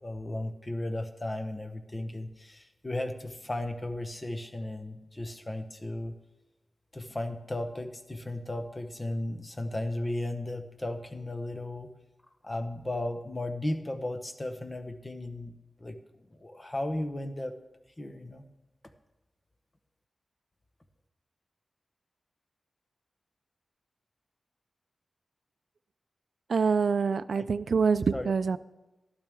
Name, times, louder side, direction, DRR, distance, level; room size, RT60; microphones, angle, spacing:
voice 1, 0.0-6.1 6.9-11.9 12.4-16.0 16.3-17.5 18.0-18.5 27.3-27.4 28.1-28.3, left 1 dB, 25° left, 7 dB, 0.9 m, -35 dB
voice 2, 26.5-28.6, right 5 dB, 65° right, 15 dB, 0.4 m, -25 dB
12.5 x 12.0 x 3.6 m, 1.1 s
wide cardioid pair, 130°, 0 cm